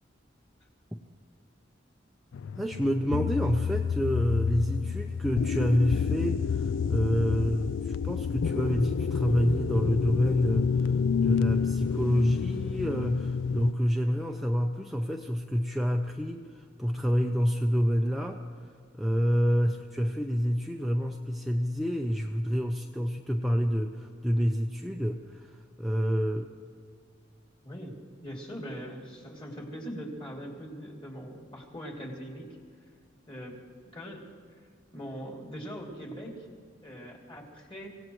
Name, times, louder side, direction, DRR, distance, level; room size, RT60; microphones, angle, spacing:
sound 1, 2.3-13.7, left 6 dB, 80° left, 0.3 m, -29 dB
voice 1, 2.6-26.5, equal, ahead, 1 dB, 0.6 m, -28 dB
voice 2, 27.6-28.0 28.2-32.6 33.3-33.6 33.9-34.2 34.9-36.5 36.8-37.9, equal, 30° left, -1 dB, 2.8 m, -41 dB
25.5 x 17.0 x 3.1 m, 2.2 s
head